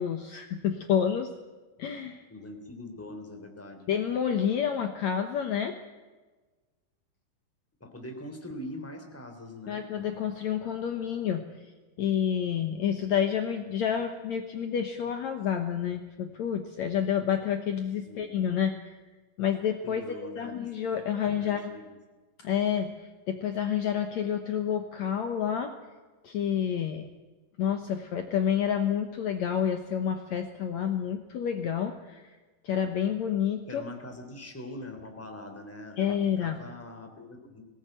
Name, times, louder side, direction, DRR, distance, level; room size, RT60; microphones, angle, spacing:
voice 1, 0.0-1.3 1.8-2.2 3.9-5.8 9.7-11.5 12.0-19.0 19.4-20.0 20.4-21.8 22.4-25.7 26.2-27.1 27.6-32.4 32.6-33.8 36.0-36.6, left 8 dB, 65° left, 6 dB, 2.1 m, -29 dB
voice 2, 2.3-3.9 7.8-9.8 18.0-18.3 19.8-21.0 21.4-22.0 33.7-37.6, left 1 dB, 5° left, 5 dB, 2.7 m, -43 dB
21.0 x 18.5 x 9.1 m, 1.3 s
omnidirectional pair, 4.0 m